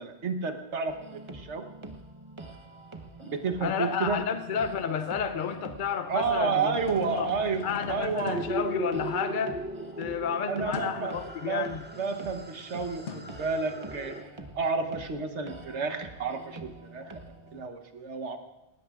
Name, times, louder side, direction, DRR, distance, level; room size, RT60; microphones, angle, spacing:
voice 1, 0.0-1.6 3.2-4.2 6.1-7.6 7.9-8.4 10.5-11.1 11.5-11.7 12.0-14.1 14.5-17.2 17.5-18.4, right 5 dB, 85° right, 6 dB, 1.4 m, -30 dB
sound 1, 0.9-17.6, right 2 dB, 30° right, 0.9 m, -46 dB
voice 2, 3.6-6.7 7.1-7.3 7.6-9.6 10.0-11.8, left 7 dB, 55° left, 9 dB, 0.7 m, -31 dB
sound 2, 6.7-9.5 10.7-11.1 13.1-14.1, left 5 dB, 90° left, 1.2 m, -42 dB
sound 3, 8.3-14.2, right 1 dB, 10° right, 0.6 m, -38 dB
19.5 x 17.0 x 2.5 m, 0.96 s
omnidirectional pair, 1.2 m